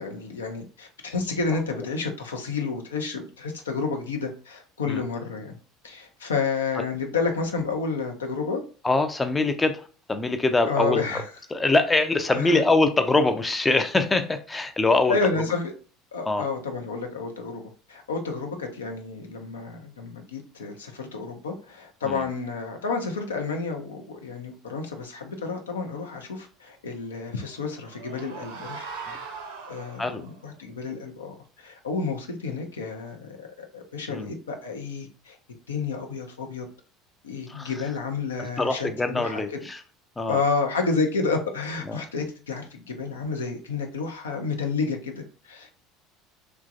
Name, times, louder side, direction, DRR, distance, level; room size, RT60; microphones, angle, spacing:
voice 1, 0.0-5.6 5.8-8.6 10.7-11.2 12.3-12.6 15.1-15.7 16.1-28.8 29.7-35.4 35.7-36.7 37.2-39.6 40.3-45.7, left 4 dB, 75° left, 4 dB, 0.5 m, -30 dB
voice 2, 8.8-11.0 11.5-15.4 16.2-16.5 22.0-22.3 29.1-29.2 30.0-30.2 34.1-34.3 37.5-37.8 38.4-39.8 40.2-40.4 41.9-42.0, left 2 dB, 15° left, 8 dB, 0.4 m, -24 dB
sound 1, 27.4-30.3, right 5 dB, 70° right, 0.7 m, -40 dB
3.0 x 2.2 x 2.5 m, 0.38 s
figure-of-eight pair, 65°, 0 cm